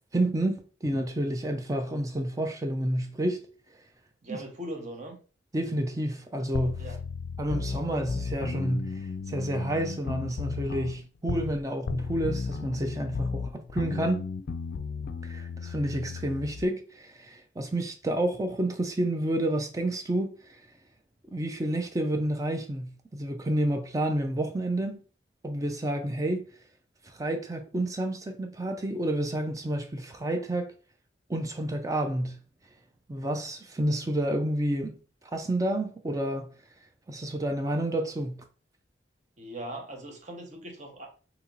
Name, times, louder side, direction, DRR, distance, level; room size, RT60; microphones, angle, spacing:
voice 1, 0.1-3.5 4.3-4.4 5.5-6.8 7.4-14.2 15.2-20.6 21.3-25.0 25.4-26.5 27.0-30.7 31.3-32.4 33.1-35.0 35.3-36.5 37.1-38.4, right 1 dB, 20° right, 0.4 m, -30 dB
voice 2, 4.2-5.2 6.8-7.0 39.4-41.1, right 1 dB, 40° right, 0.9 m, -40 dB
sound 1, 6.5-11.6 11.9-16.6, left 5 dB, 60° left, 0.3 m, -34 dB
2.8 x 2.8 x 3.8 m
head